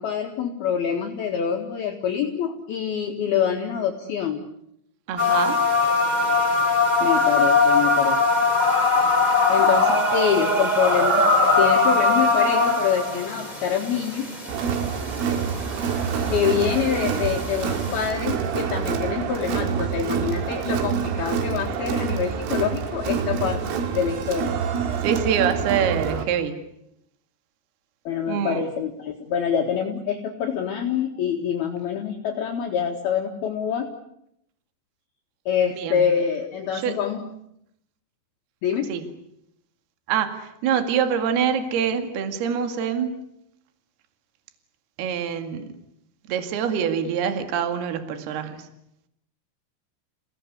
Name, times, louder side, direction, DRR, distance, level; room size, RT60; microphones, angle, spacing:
voice 1, 0.0-4.4 7.0-8.2 9.5-14.3 16.3-23.6 23.9-24.5 28.0-33.9 35.5-37.3 38.6-38.9, left 7 dB, 60° left, 1 dB, 3.2 m, -26 dB
voice 2, 5.1-5.6 25.0-26.6 28.3-28.6 35.8-36.0 36.7-37.0 38.9-39.0 40.1-43.1 45.0-45.7 46.3-48.7, right 8 dB, 60° right, 8 dB, 3.7 m, -25 dB
Istanbul morning, 5.2-18.1, left 3 dB, 15° right, 2.0 m, -21 dB
Crowd, 14.5-26.2, right 7 dB, 80° right, 4.7 m, -27 dB
30.0 x 18.0 x 9.7 m, 0.78 s
omnidirectional pair, 5.8 m